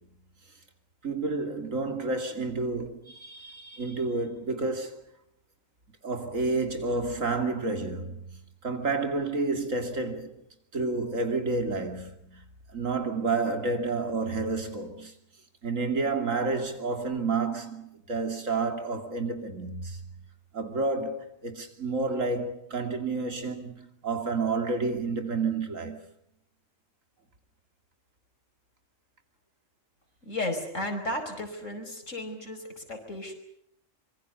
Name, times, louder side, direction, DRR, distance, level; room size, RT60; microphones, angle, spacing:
voice 1, 1.0-5.0 6.0-10.4 10.7-12.4 12.7-15.1 15.6-20.1 20.5-26.0, right 3 dB, 80° right, 3.0 m, -30 dB
voice 2, 30.2-33.3, left 1 dB, 70° left, 5.4 m, -34 dB
25.0 x 23.5 x 6.8 m
omnidirectional pair, 1.3 m